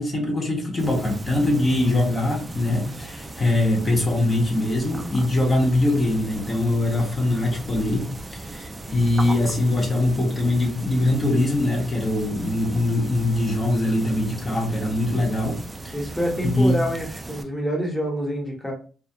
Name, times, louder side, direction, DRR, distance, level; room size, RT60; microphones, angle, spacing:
voice 1, 0.0-15.6 15.8-15.9 16.5-16.7, left 1 dB, 35° left, -1 dB, 0.9 m, -22 dB
sound 1, 0.8-17.4, right 2 dB, 20° right, 0.3 m, -37 dB
voice 2, 15.9-18.7, equal, 10° left, 0 dB, 1.0 m, -27 dB
2.2 x 2.1 x 2.7 m, 0.38 s
cardioid pair, 90°, 0 cm